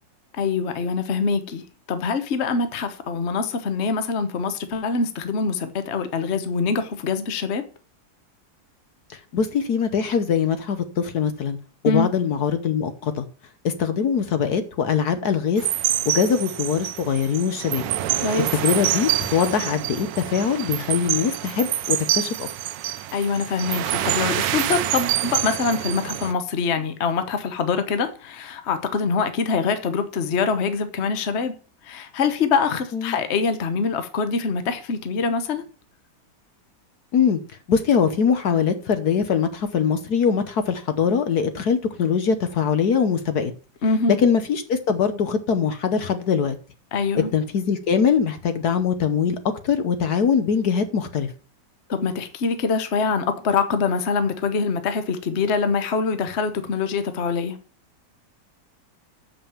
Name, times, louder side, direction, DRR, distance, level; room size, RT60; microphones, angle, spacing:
voice 1, 0.3-7.6 11.8-12.1 18.2-18.5 23.1-31.5 31.8-35.6 43.8-44.2 46.9-47.3 51.9-57.6, left 5 dB, 45° left, 1.1 m, -24 dB
voice 2, 9.1-11.6 11.8-13.2 13.6-15.6 16.0-17.8 18.6-22.5 32.9-33.2 37.1-37.4 37.7-43.5 44.2-46.5 47.3-49.4 49.6-51.3, left 6 dB, 60° left, 1.3 m, -22 dB
sound 1, 15.6-26.3, right 13 dB, 80° right, 1.3 m, -26 dB
7.3 x 5.7 x 7.1 m
omnidirectional pair, 2.0 m